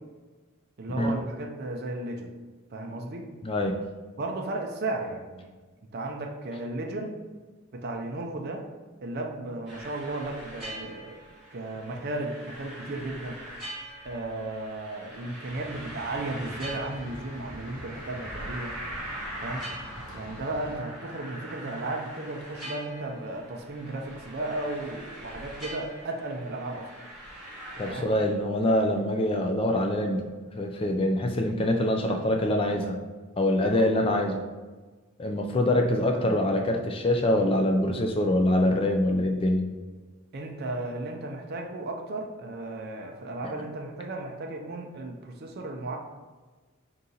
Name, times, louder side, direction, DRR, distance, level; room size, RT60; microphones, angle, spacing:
voice 1, 0.8-2.3 2.7-3.3 4.2-5.5 5.9-7.2 7.7-8.6 9.0-11.2 11.5-13.4 14.0-18.8 19.4-19.7 20.1-26.9 27.9-28.1 33.7-33.9 40.3-46.0, right 2 dB, 45° right, 2 dB, 0.5 m, -34 dB
voice 2, 3.4-3.8 27.8-30.2 30.5-33.0 33.4-34.4 35.2-39.7, left 1 dB, 25° left, 3 dB, 0.3 m, -24 dB
sound 1, 9.7-27.9, right 1 dB, ahead, 1.4 m, -42 dB
sound 2, 15.4-20.8, left 1 dB, 65° left, 0.9 m, -46 dB
3.8 x 2.8 x 3.8 m, 1.3 s
head